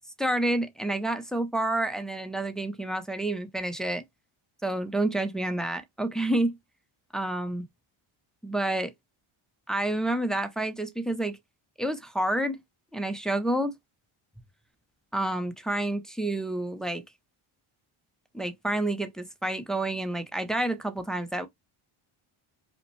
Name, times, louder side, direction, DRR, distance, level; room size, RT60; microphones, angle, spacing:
voice 1, 0.2-4.0 4.6-6.6 7.1-7.7 8.4-8.9 9.7-11.4 11.8-12.6 12.9-13.7 15.1-17.0 18.3-21.5, right 1 dB, ahead, 0.4 m, -29 dB
5.2 x 2.1 x 3.0 m
cardioid pair, 135°, 50 cm